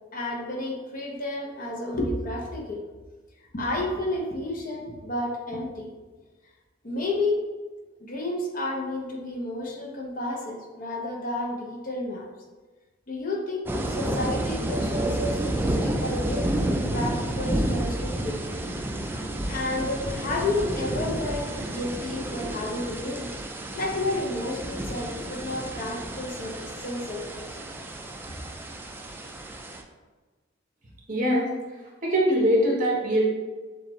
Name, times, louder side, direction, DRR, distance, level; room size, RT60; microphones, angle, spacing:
voice 1, 0.1-2.8 3.5-5.9 6.8-7.5 8.0-12.3 13.1-18.6 19.1-23.3 23.7-27.6, left 2 dB, 45° left, -1 dB, 0.8 m, -31 dB
sound 1, 13.7-29.8, right 1 dB, 10° right, 0.3 m, -30 dB
voice 2, 31.1-31.5 32.0-33.3, equal, 40° right, -3 dB, 1.1 m, -22 dB
6.7 x 2.5 x 3.1 m, 1.3 s
head